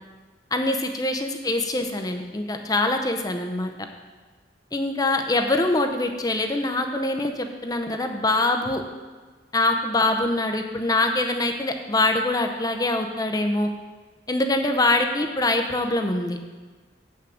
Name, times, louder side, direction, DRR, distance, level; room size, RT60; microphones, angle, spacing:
voice 1, 0.5-3.7 4.7-8.8 9.5-13.7 14.3-16.4, left 2 dB, 20° left, 5 dB, 0.6 m, -24 dB
8.2 x 5.9 x 6.3 m, 1.4 s
head